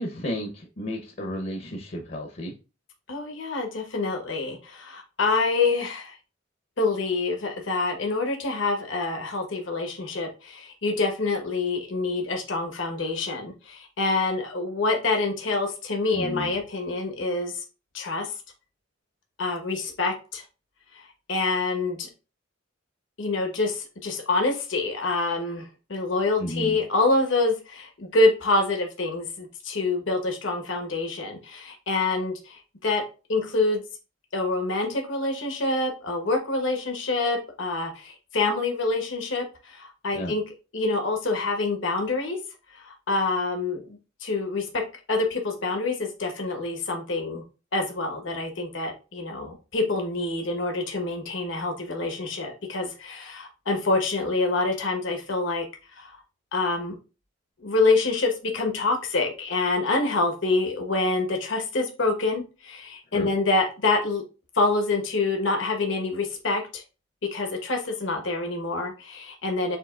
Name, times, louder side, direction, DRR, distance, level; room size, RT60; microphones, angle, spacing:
voice 1, 0.0-2.5 16.1-16.5 26.4-26.8 40.1-40.3 63.1-63.3, equal, 50° left, 3 dB, 0.8 m, -32 dB
voice 2, 3.1-6.2 6.8-17.6 17.9-18.3 19.4-20.4 20.9-21.0 21.3-22.1 23.2-33.0 33.3-33.8 34.3-40.4 40.7-42.4 42.7-44.7 45.1-47.4 47.7-55.6 56.0-56.2 56.5-56.9 57.6-64.2 64.5-66.8 67.3-69.8, left 3 dB, 75° left, 3 dB, 1.1 m, -26 dB
7.6 x 2.9 x 2.4 m, 0.31 s
head